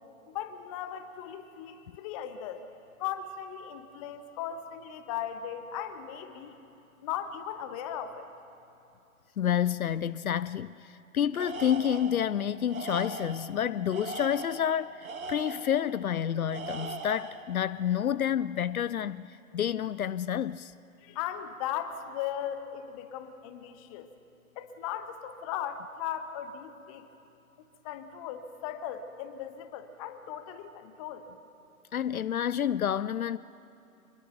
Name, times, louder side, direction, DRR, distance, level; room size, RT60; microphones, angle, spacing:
voice 1, 0.3-2.7 3.0-6.6 7.0-8.3 21.0-24.1 24.6-27.1 27.6-31.3, left 9 dB, 25° left, 1.1 m, -37 dB
voice 2, 9.4-20.7 31.9-33.4, left 9 dB, 75° left, 0.5 m, -29 dB
Tools, 11.3-12.2 12.7-13.5 13.9-15.8 16.5-17.4, right 4 dB, 70° right, 2.1 m, -39 dB
24.5 x 21.5 x 6.0 m
figure-of-eight pair, 125°, 43 cm